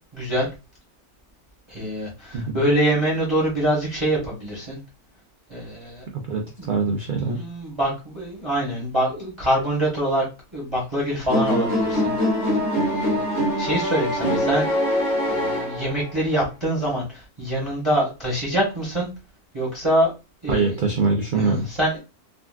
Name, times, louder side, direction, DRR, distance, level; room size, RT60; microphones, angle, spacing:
voice 1, 0.1-0.5 1.7-4.8 5.5-6.0 6.6-6.7 7.2-10.2 10.5-12.1 12.4-12.5 12.8-15.0 15.3-19.1 19.5-20.1 20.4-20.7 21.4-22.0, right 1 dB, 25° right, -4 dB, 0.9 m, -25 dB
voice 2, 2.3-2.7 6.2-7.4 20.5-21.7, right 4 dB, 80° right, 1 dB, 0.4 m, -23 dB
sound 1, 11.3-16.2, left 1 dB, 60° left, 1.4 m, -23 dB
3.7 x 2.3 x 2.3 m, 0.29 s
omnidirectional pair, 1.6 m